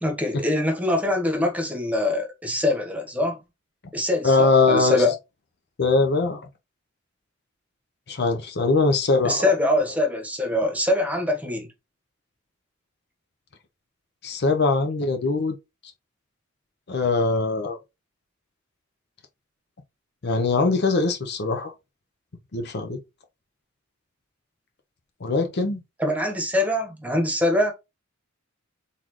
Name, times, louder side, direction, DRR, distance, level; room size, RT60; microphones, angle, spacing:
voice 1, 0.0-3.4 3.9-5.1 9.2-11.7 26.0-27.7, left 1 dB, 5° right, 1.1 m, -23 dB
voice 2, 4.2-5.0 5.8-6.4 8.1-9.5 14.2-15.6 16.9-17.8 20.2-21.7 22.5-23.0 25.2-25.8, left 3 dB, 55° left, 0.7 m, -21 dB
4.2 x 3.7 x 3.0 m
head